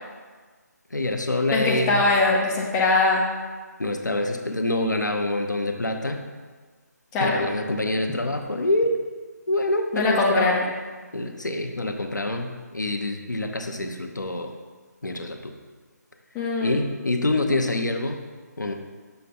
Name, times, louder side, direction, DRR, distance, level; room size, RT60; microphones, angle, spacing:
voice 1, 0.9-2.0 3.8-6.3 7.2-9.0 9.5-10.6 11.1-14.5 15.0-15.6 16.6-18.2 18.6-18.7, left 2 dB, 80° left, 4 dB, 0.8 m, -26 dB
voice 2, 1.5-3.2 7.1-7.4 9.9-10.7 16.3-16.7, left 2 dB, 10° left, -3 dB, 0.5 m, -21 dB
6.8 x 3.3 x 5.4 m, 1.4 s
figure-of-eight pair, 155°, 10 cm